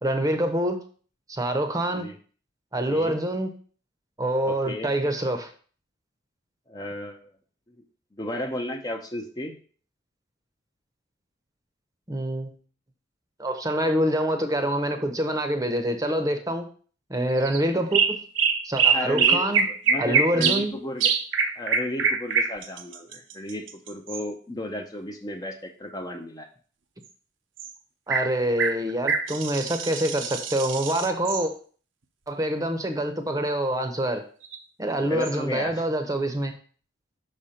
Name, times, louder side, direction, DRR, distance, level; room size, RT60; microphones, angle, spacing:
voice 1, 0.0-0.8 1.3-2.1 2.7-3.5 4.2-5.5 12.1-12.5 13.4-16.7 17.1-18.2 18.6-19.7 20.0-20.7 28.1-31.5 32.3-34.2 34.8-36.5, right 1 dB, 20° right, 7 dB, 0.7 m, -26 dB
voice 2, 4.4-4.9 6.7-7.3 7.7-7.8 8.1-9.6 18.9-21.1 21.6-26.5 35.0-35.8, left 1 dB, 20° left, 4 dB, 0.6 m, -34 dB
sound 1, 17.4-17.6 17.9-20.7 21.0-24.2 27.6-27.7 28.1-28.3 28.6-31.5 34.4-34.6 35.2-35.3, right 6 dB, 75° right, 0.7 m, -24 dB
6.1 x 4.3 x 5.0 m, 0.43 s
head